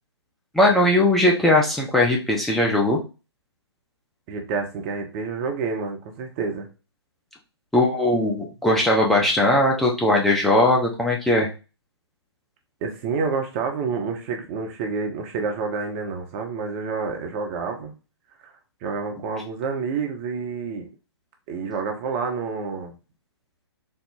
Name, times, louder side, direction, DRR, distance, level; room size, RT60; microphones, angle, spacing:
voice 1, 0.5-3.0 7.7-11.5, left 1 dB, ahead, -2 dB, 0.7 m, -19 dB
voice 2, 4.3-6.7 12.8-17.9 18.4-18.5 18.8-20.9 21.5-22.9, right 5 dB, 30° right, 3 dB, 0.8 m, -28 dB
4.2 x 2.0 x 3.8 m, 0.31 s
figure-of-eight pair, 125°, 14 cm